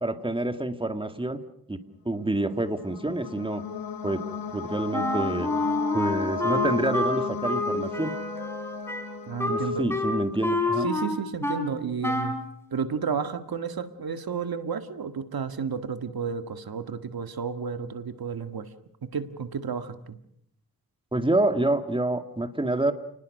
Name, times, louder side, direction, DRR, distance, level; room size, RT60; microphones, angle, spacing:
voice 1, 0.0-1.4 1.7-3.6 4.0-4.2 4.5-5.5 5.9-8.1 9.5-10.9 21.1-22.9, right 2 dB, 15° right, 9 dB, 2.0 m, -27 dB
sound 1, 2.5-10.2, left 5 dB, 80° left, 1.6 m, -35 dB
Wind instrument woodwind instrument, 4.9-11.7 12.0-12.5, left 2 dB, 5° left, 4.2 m, -28 dB
voice 2, 9.3-9.9 10.8-12.4 12.7-18.7 19.1-20.2, right 6 dB, 80° right, 9 dB, 1.8 m, -32 dB
29.0 x 19.5 x 6.5 m, 0.71 s
wide cardioid pair, 80°, 36 cm